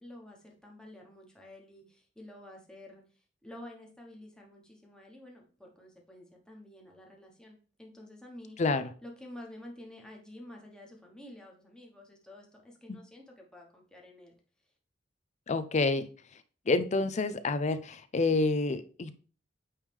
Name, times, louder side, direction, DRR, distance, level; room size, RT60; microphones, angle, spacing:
voice 1, 0.0-8.7 9.0-14.3, left 1 dB, 5° left, -1 dB, 1.2 m, -50 dB
voice 2, 8.6-8.9 12.9-13.0 15.5-16.1 16.7-19.2, left 3 dB, 40° left, 11 dB, 0.5 m, -28 dB
8.6 x 3.2 x 3.4 m, 0.39 s
head